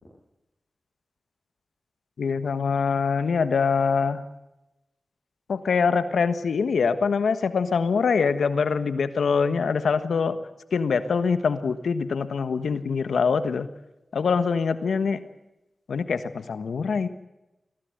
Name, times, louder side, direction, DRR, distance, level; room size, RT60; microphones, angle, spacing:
voice 1, 2.2-4.2 5.5-10.4 10.7-13.7 14.1-15.2 15.9-17.1, left 5 dB, 90° left, 12 dB, 1.4 m, -24 dB
23.5 x 16.5 x 8.0 m, 0.95 s
cardioid pair, 50°, 0 cm